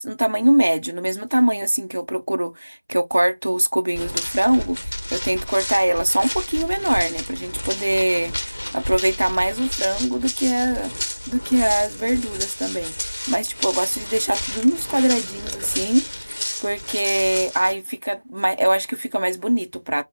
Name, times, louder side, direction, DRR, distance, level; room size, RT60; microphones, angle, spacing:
voice 1, 0.0-10.9 11.3-20.0, right 1 dB, 50° right, 0.7 m, -22 dB
sound 1, 3.9-17.7, left 1 dB, 45° left, 0.8 m, -31 dB
5.5 x 2.1 x 3.5 m
figure-of-eight pair, 180°, 0 cm